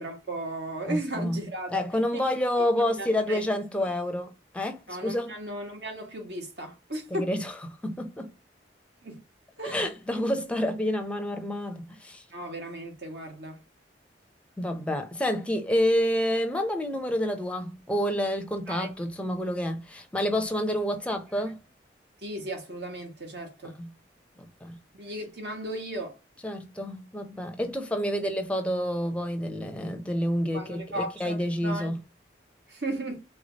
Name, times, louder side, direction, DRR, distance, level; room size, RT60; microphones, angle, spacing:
voice 1, 0.0-1.8 2.1-2.3 3.0-3.4 4.9-7.3 9.0-9.2 9.6-9.9 12.3-13.6 18.7-18.9 22.2-23.7 24.9-26.1 30.5-31.9 32.7-33.2, right 1 dB, 65° right, 1.6 m, -35 dB
voice 2, 0.9-1.4 1.7-5.4 7.1-8.4 9.6-12.2 14.6-21.6 23.6-23.9 24.4-24.8 26.4-32.0, equal, 5° left, 0.6 m, -29 dB
3.5 x 3.2 x 4.0 m
head